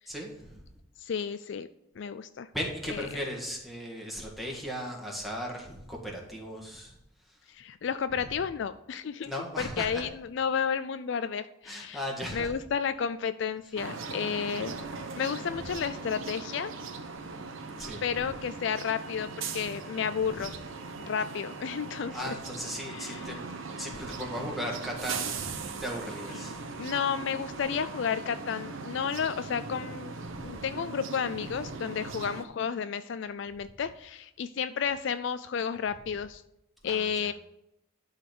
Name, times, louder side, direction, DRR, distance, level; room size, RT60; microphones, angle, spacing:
voice 1, 0.1-0.6 2.5-7.4 8.2-8.5 9.3-10.0 11.6-12.5 13.6-13.8 15.5-15.6 17.8-18.3 20.2-20.5 22.1-23.4 23.8-26.6 30.2-30.6 31.4-31.6 32.0-32.1 36.0-36.1 36.8-37.3, equal, ahead, -1 dB, 1.6 m, -38 dB
voice 2, 1.0-1.7 2.0-2.5 2.9-3.0 7.5-9.3 9.8-12.0 12.3-14.7 15.2-16.7 18.0-20.5 21.1-22.3 22.9-23.2 26.8-30.2 30.4-36.4 36.8-37.3, left 7 dB, 55° left, 12 dB, 0.3 m, -32 dB
sound 1, 13.8-32.4, right 4 dB, 65° right, 1.0 m, -39 dB
11.5 x 4.0 x 6.8 m, 0.83 s
head